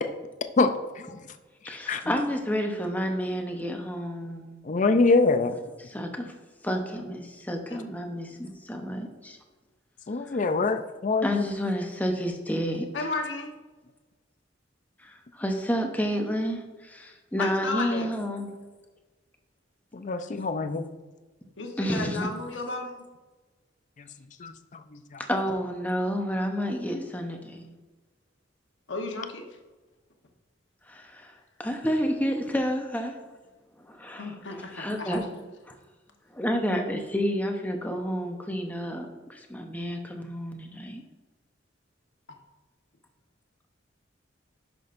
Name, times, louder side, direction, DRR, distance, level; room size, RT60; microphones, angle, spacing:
voice 1, 1.6-4.6 5.8-6.3 6.6-9.4 10.3-10.6 11.2-12.9 15.0-18.5 21.8-22.3 25.3-27.7 30.9-31.3 31.6-33.2 33.8-35.2 35.7-35.8 36.3-41.0, equal, 10° left, 3 dB, 0.8 m, -30 dB
voice 2, 4.7-5.5 10.1-11.4 19.9-20.9 24.4-24.5, left 3 dB, 40° left, 9 dB, 0.5 m, -23 dB
voice 3, 12.9-13.5 17.4-18.1 20.2-20.3 21.6-23.0 28.9-29.4 34.2-35.3, left 3 dB, 75° left, 2 dB, 1.1 m, -33 dB
11.0 x 6.1 x 2.6 m, 1.2 s
head